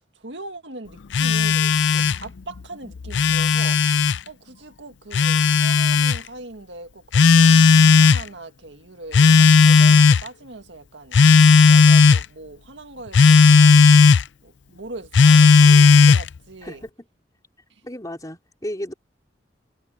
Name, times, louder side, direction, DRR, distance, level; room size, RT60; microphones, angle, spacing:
voice 1, 0.2-3.8 4.3-7.6 7.9-11.2 11.6-13.7 14.4-16.8, right 2 dB, 80° right, 1.9 m, -40 dB
Telephone, 1.1-2.2 3.0-4.2 5.1-6.2 7.1-8.2 9.1-10.3 11.1-12.2 13.1-14.2 15.1-16.3, left 5 dB, 75° left, 0.5 m, -13 dB
voice 2, 16.6-16.9 17.8-18.9, equal, 20° left, 3.8 m, -33 dB
head